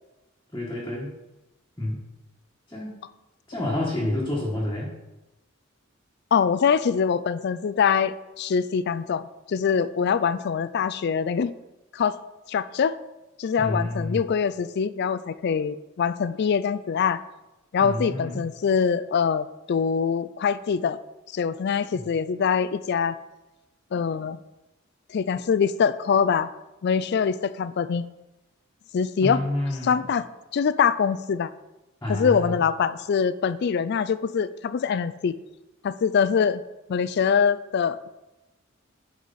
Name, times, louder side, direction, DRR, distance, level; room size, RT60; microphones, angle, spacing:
voice 1, 0.5-1.1 1.8-2.0 2.7-2.9 3.5-4.9 13.6-14.2 17.8-18.4 21.9-22.1 29.2-30.0 32.0-32.6, left 1 dB, 15° left, -6 dB, 1.4 m, -29 dB
voice 2, 6.3-11.5 11.9-12.2 12.5-13.0 13.4-17.2 17.7-21.0 21.3-23.2 23.9-24.4 25.1-26.5 26.8-28.1 28.9-29.4 29.8-30.3 30.5-31.5 32.1-35.3 35.8-36.6 36.9-38.1, left 6 dB, 55° left, 15 dB, 0.3 m, -24 dB
10.0 x 4.8 x 4.2 m, 1.0 s
head